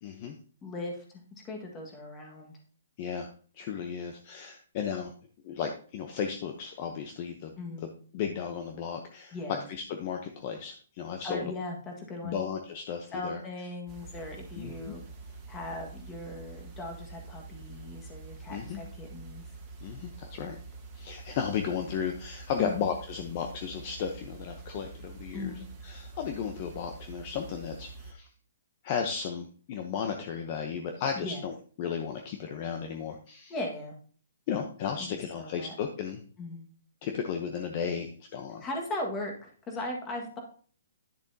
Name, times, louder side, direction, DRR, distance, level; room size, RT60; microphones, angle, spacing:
voice 1, 0.0-0.4 3.0-3.3 3.6-5.1 5.4-7.9 8.1-9.4 9.7-11.4 12.2-13.4 14.6-15.0 18.5-18.8 19.8-20.6 20.9-28.3 28.8-33.5 34.5-36.2 37.0-38.7, left 7 dB, 35° left, 5 dB, 0.8 m, -34 dB
voice 2, 0.6-1.0 1.4-2.6 7.6-7.9 9.3-9.6 11.2-12.4 13.1-15.0 15.5-19.4 22.6-22.9 25.3-25.6 31.2-31.5 33.5-33.9 35.0-35.7 36.4-36.7 38.6-40.4, left 2 dB, 15° left, 1 dB, 1.7 m, -38 dB
sound 1, 13.9-28.1, right 4 dB, 20° right, 1.6 m, -46 dB
10.0 x 6.9 x 2.8 m, 0.43 s
hypercardioid pair, 155°, 0 cm